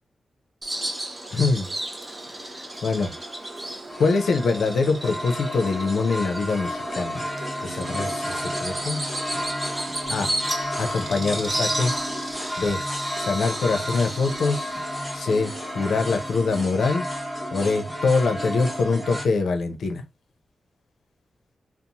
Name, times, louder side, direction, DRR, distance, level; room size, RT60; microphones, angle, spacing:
Bird vocalization bird call bird song, 0.6-16.6, right 1 dB, 20° right, 0.5 m, -34 dB
voice 1, 1.3-1.7 2.8-3.1 4.0-7.2 7.6-9.0 10.1-10.3 10.8-12.0 12.6-12.8 13.2-14.7 15.1-17.0 17.5-20.0, left 4 dB, 75° left, 0.5 m, -24 dB
sound 1, 2.2-19.3, equal, ahead, 1.0 m, -32 dB
2.6 x 2.0 x 2.8 m
wide cardioid pair, 145°, 0 cm